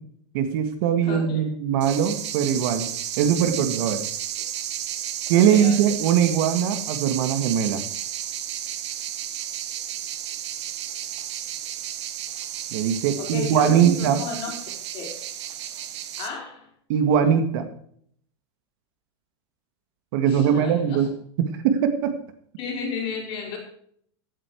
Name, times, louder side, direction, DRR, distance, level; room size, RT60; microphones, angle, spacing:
voice 1, 0.3-2.9 3.2-4.0 5.3-7.8 12.7-14.2 16.9-17.7 20.1-21.1 21.6-22.1, right 8 dB, 50° right, 8 dB, 1.9 m, -21 dB
voice 2, 1.0-1.5 5.3-5.8 13.2-14.5 14.9-15.1 16.2-16.7 20.2-21.1 22.6-23.6, left 5 dB, 35° left, 1 dB, 4.4 m, -33 dB
sound 1, 1.8-16.3, right 11 dB, 70° right, 1.9 m, -32 dB
16.5 x 8.4 x 4.6 m, 0.63 s
supercardioid pair, 170°, 15 cm